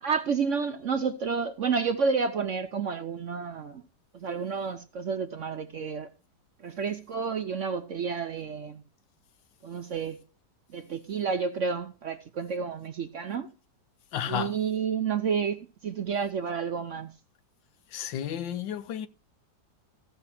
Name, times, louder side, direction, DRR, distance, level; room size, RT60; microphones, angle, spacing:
voice 1, 0.0-3.8 4.1-6.1 6.6-8.8 9.6-10.2 10.7-13.5 14.3-17.1, right 5 dB, 60° right, 0.8 m, -30 dB
voice 2, 14.1-14.5 17.9-19.1, left 10 dB, 90° left, 1.6 m, -32 dB
15.0 x 5.6 x 5.8 m
omnidirectional pair, 2.0 m